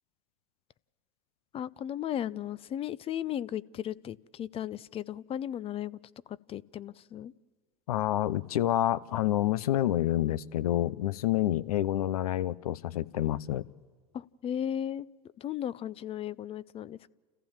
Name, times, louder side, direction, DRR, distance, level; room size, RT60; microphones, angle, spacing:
voice 1, 1.5-6.0 6.5-7.3 14.1-15.1 15.4-17.1, left 10 dB, 30° left, 19 dB, 0.5 m, -35 dB
voice 2, 7.9-13.7, left 13 dB, 80° left, 18 dB, 0.7 m, -28 dB
29.0 x 15.0 x 7.4 m, 1.5 s
hypercardioid pair, 95°, 19 cm